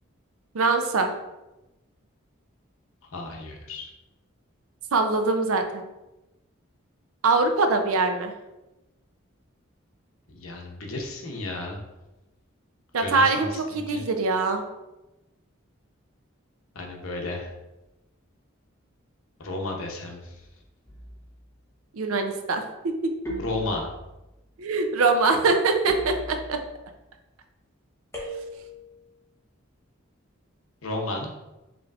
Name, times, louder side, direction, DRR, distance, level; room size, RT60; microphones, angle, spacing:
voice 1, 0.5-1.2 4.9-5.8 7.2-8.3 12.9-13.5 13.7-14.6 21.9-22.9 24.6-26.6, right 3 dB, 85° right, 6 dB, 0.5 m, -23 dB
voice 2, 3.1-3.9 10.3-11.8 13.0-14.0 16.7-17.5 19.4-20.5 23.4-23.9 30.8-31.4, left 2 dB, 80° left, 1 dB, 0.8 m, -33 dB
sound 1, 20.9-21.4 23.3-24.2 25.9-26.8 28.1-28.9, equal, 10° left, 0.8 m, -36 dB
5.0 x 3.1 x 2.4 m, 0.99 s
head